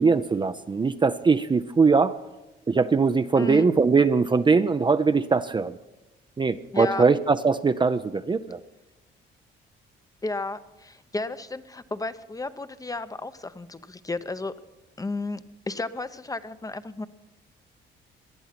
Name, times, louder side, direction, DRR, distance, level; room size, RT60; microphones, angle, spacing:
voice 1, 0.0-2.2 2.7-5.8 6.4-8.6, right 4 dB, 25° right, 10 dB, 0.5 m, -21 dB
voice 2, 3.4-3.7 6.7-7.0 10.2-14.5 15.0-17.1, left 3 dB, 15° left, 12 dB, 0.7 m, -33 dB
19.0 x 11.0 x 5.8 m, 1.0 s
cardioid pair, 90°, 20 cm